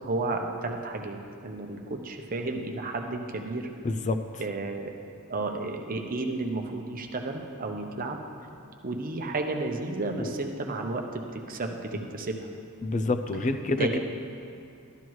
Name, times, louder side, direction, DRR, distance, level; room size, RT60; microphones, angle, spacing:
voice 1, 0.0-1.2 1.4-3.7 4.4-4.9 5.3-8.2 8.8-12.5 13.8-14.0, right 2 dB, 40° right, 3 dB, 0.8 m, -32 dB
voice 2, 3.8-4.2 10.2-10.3 12.8-14.0, left 2 dB, 35° left, 9 dB, 0.4 m, -27 dB
12.5 x 11.5 x 3.1 m, 2.5 s
head